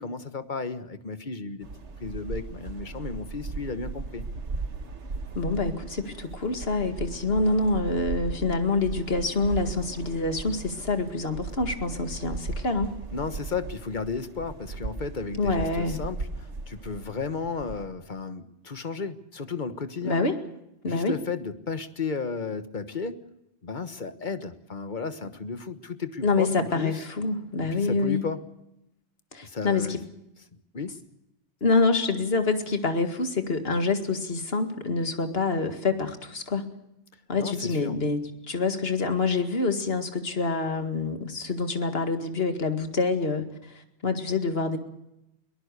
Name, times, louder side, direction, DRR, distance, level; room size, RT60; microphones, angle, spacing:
voice 1, 0.0-1.7 2.0-4.3 13.1-20.2 20.8-23.3 23.6-27.0 27.7-28.4 29.4-30.0 30.7-31.0 37.4-38.0, left 4 dB, 45° left, 11 dB, 1.4 m, -34 dB
sound 1, 1.6-17.8, right 3 dB, 90° right, 1.9 m, -37 dB
voice 2, 5.4-13.0 15.4-16.0 20.0-20.4 20.8-21.1 26.2-28.3 29.3-30.0 31.6-36.7 37.3-43.5 44.0-44.8, left 3 dB, 60° left, 7 dB, 2.3 m, -26 dB
23.0 x 19.0 x 6.7 m, 0.85 s
omnidirectional pair, 1.1 m